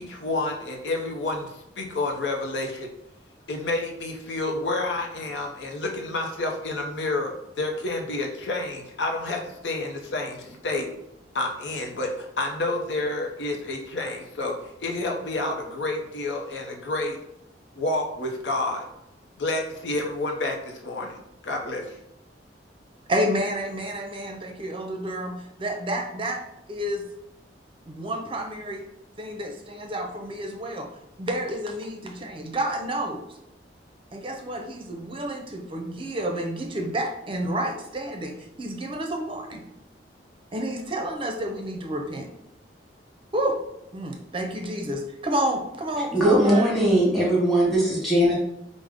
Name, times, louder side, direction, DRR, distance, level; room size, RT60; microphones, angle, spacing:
voice 1, 0.0-2.9 3.5-10.9 11.3-14.5 14.8-17.2 17.8-18.9 19.4-21.2 21.4-22.0, left 2 dB, 80° left, 2 dB, 0.6 m, -29 dB
voice 2, 23.1-26.4 26.7-27.0 27.9-28.8 29.2-30.9 31.2-33.2 34.1-39.6 40.5-42.3 43.3-43.6 43.9-46.7, right 1 dB, 30° right, 3 dB, 0.6 m, -30 dB
voice 3, 46.1-48.3, right 1 dB, ahead, -5 dB, 1.3 m, -20 dB
4.9 x 2.1 x 3.5 m, 0.82 s
head